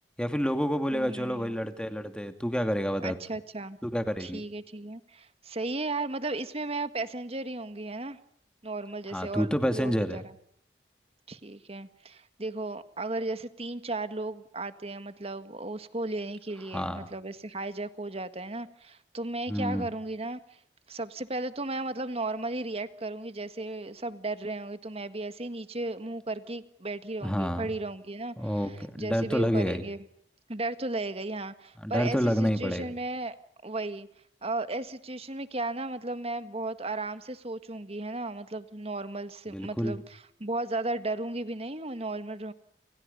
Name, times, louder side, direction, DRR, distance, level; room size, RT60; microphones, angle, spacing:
voice 1, 0.2-3.2 3.8-4.4 9.1-10.2 16.7-17.1 19.5-19.9 27.2-27.7 28.4-29.8 31.8-32.9 39.5-40.0, equal, 5° left, 7 dB, 2.5 m, -29 dB
voice 2, 0.9-1.5 3.0-3.8 4.2-8.2 8.6-10.2 11.3-20.4 20.9-28.5 29.0-30.0 30.5-33.4 33.6-34.1 34.4-42.5, right 2 dB, 35° right, 11 dB, 1.7 m, -35 dB
29.5 x 27.5 x 5.5 m, 0.68 s
head